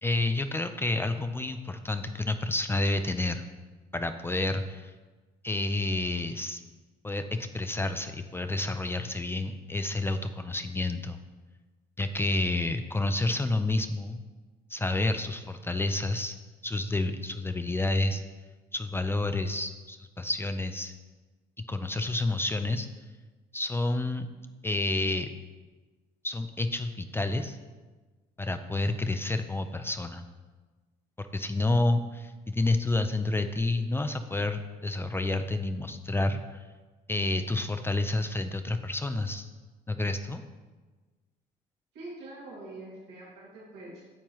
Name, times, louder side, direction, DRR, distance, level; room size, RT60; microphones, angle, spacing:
voice 1, 0.0-3.4 3.9-4.9 5.4-6.6 7.0-11.2 12.0-14.2 14.7-16.4 16.6-18.2 18.7-20.9 21.7-22.9 23.5-24.3 24.6-25.3 26.2-27.6 28.4-30.2 31.2-36.6 37.1-39.5 39.9-40.4, left 2 dB, 15° left, 8 dB, 0.4 m, -29 dB
voice 2, 41.9-44.0, right 2 dB, 85° right, -6 dB, 2.6 m, -44 dB
9.1 x 7.2 x 3.0 m, 1.3 s
cardioid pair, 110°, 17 cm